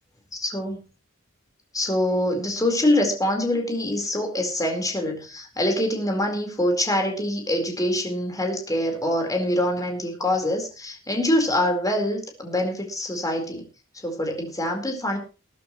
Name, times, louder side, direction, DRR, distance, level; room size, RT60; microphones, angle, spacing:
voice 1, 0.3-0.8 1.7-13.6 14.0-15.2, left 1 dB, 15° left, 2 dB, 4.3 m, -25 dB
21.0 x 11.0 x 3.1 m, 0.33 s
head